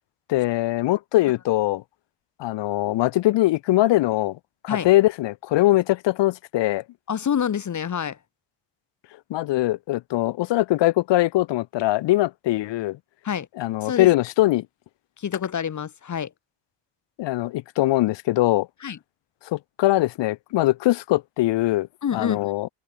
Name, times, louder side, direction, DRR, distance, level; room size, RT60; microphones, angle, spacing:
voice 1, 0.3-1.8 2.4-4.4 4.6-6.8 9.3-13.0 13.6-14.7 17.2-18.7 19.5-21.9 22.1-22.7, left 17 dB, 85° left, 0.7 m, -22 dB
voice 2, 7.1-8.2 13.2-13.5 13.8-14.1 15.2-16.3 18.8-19.0 22.0-22.5, left 8 dB, 45° left, 1.4 m, -27 dB
cardioid pair, 125°, 42 cm